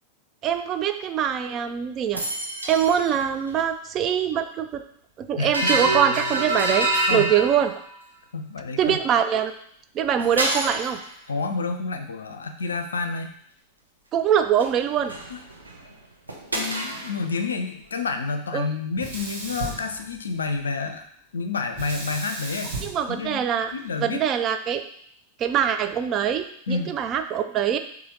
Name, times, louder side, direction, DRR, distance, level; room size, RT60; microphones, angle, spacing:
voice 1, 0.4-2.2 2.7-4.8 5.2-7.7 8.8-9.5 9.9-11.0 14.1-15.1 18.5-18.7 22.8-23.7 24.0-24.8 25.4-27.8, right 9 dB, 30° right, 8 dB, 0.4 m, -23 dB
sound 1, 2.1-3.2 3.5-3.6 5.5-8.0 10.2-11.1 14.6-14.7 15.0-15.9 16.3-17.3, right 1 dB, 80° right, 0.7 m, -27 dB
voice 2, 5.4-5.8 7.1-7.3 8.3-9.0 11.3-13.3 15.3-15.4 16.5-21.0 21.3-22.8 23.1-23.4 23.7-24.2 26.7-27.0, left 4 dB, 70° left, 7 dB, 0.4 m, -29 dB
Guitar, 5.8-7.5, left 2 dB, 45° left, 0.9 m, -42 dB
Sink (filling or washing), 19.0-20.6 21.7-24.0, right 2 dB, 55° right, 1.0 m, -36 dB
4.1 x 2.7 x 3.9 m, 0.65 s
figure-of-eight pair, 90°, 0 cm